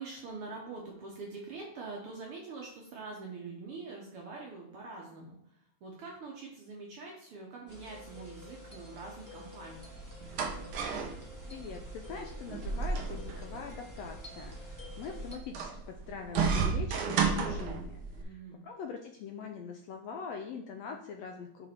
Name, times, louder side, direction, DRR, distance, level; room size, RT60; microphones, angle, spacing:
voice 1, 0.0-9.9 18.2-18.6, right 3 dB, 65° right, -1 dB, 1.5 m, -44 dB
sound 1, 7.7-15.4, left 1 dB, 30° right, 0.3 m, -50 dB
sound 2, 9.8-18.2, right 5 dB, 80° right, 1.2 m, -34 dB
voice 2, 11.5-18.0 18.3-21.7, left 5 dB, 80° left, 3 dB, 1.5 m, -43 dB
8.1 x 3.4 x 4.3 m, 0.72 s
omnidirectional pair, 3.5 m